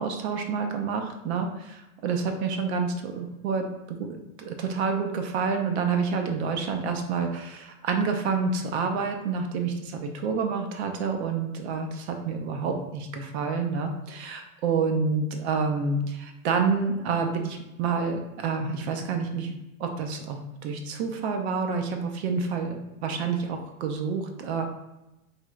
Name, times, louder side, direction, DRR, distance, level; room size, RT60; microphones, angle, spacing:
voice 1, 0.0-19.5 19.8-24.7, right 5 dB, 50° right, 4 dB, 0.5 m, -28 dB
3.2 x 2.9 x 2.3 m, 0.97 s
hypercardioid pair, 135°, 43 cm